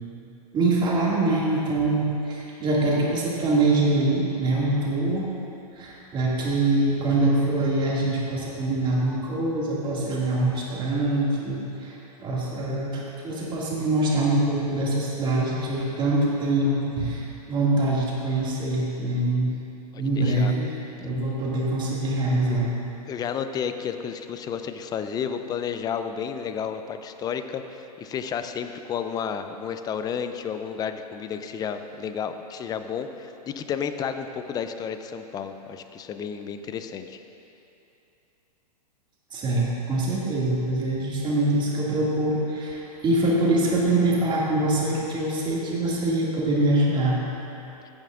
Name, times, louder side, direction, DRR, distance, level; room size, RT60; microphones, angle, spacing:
voice 1, 0.5-5.3 5.7-19.5 20.0-20.7 21.0-22.7 39.3-47.2, right 2 dB, 25° right, -5 dB, 2.2 m, -24 dB
voice 2, 19.9-20.5 23.1-37.2, left 7 dB, 20° left, 8 dB, 0.4 m, -32 dB
15.5 x 8.9 x 2.5 m, 2.8 s
hypercardioid pair, 115°, 20 cm